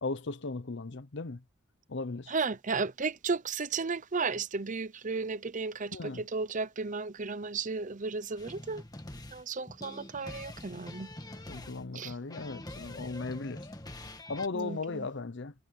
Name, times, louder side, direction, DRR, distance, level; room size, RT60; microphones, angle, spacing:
voice 1, 0.0-1.4 1.9-2.3 5.9-6.2 11.5-13.7 14.3-15.5, left 3 dB, 55° left, 0.8 m, -37 dB
voice 2, 2.3-8.8 9.3-11.1 11.9-12.1 14.5-15.1, right 4 dB, 35° right, 0.7 m, -34 dB
sound 1, 8.4-14.5, left 1 dB, 20° left, 1.8 m, -45 dB
head